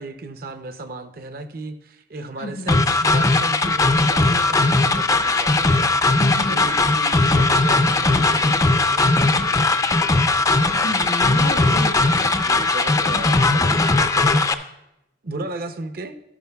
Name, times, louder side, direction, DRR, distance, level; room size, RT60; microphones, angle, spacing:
voice 1, 0.0-5.9 6.4-10.2 10.8-11.0 11.6-11.8 12.4-13.8 14.1-14.4 15.2-16.2, right 2 dB, 55° right, 8 dB, 0.6 m, -34 dB
voice 2, 2.4-2.7 6.2-6.7 10.7-12.3, left 1 dB, 85° left, 4 dB, 1.1 m, -31 dB
sound 1, 2.7-14.5, left 3 dB, 20° left, 0.4 m, -18 dB
12.0 x 11.0 x 2.3 m, 0.87 s
head